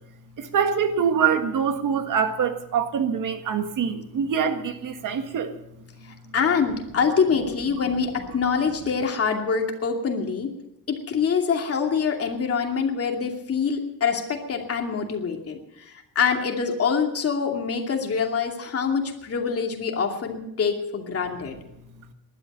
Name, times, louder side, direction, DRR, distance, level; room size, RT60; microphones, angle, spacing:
voice 1, 0.4-5.5, right 7 dB, 65° right, 1.7 m, -24 dB
voice 2, 6.3-10.5 10.9-15.6 15.9-21.5, left 6 dB, 45° left, 2.6 m, -25 dB
19.5 x 12.0 x 5.5 m
cardioid pair, 155°, 34 cm